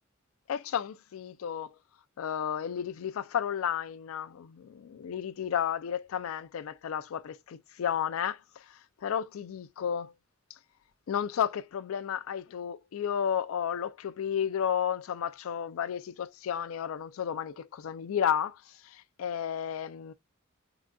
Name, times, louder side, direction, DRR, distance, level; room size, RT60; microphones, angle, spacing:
voice 1, 0.5-1.7 2.2-10.1 11.1-20.1, left 8 dB, 70° left, 0.4 m, -32 dB
3.8 x 2.2 x 2.3 m
head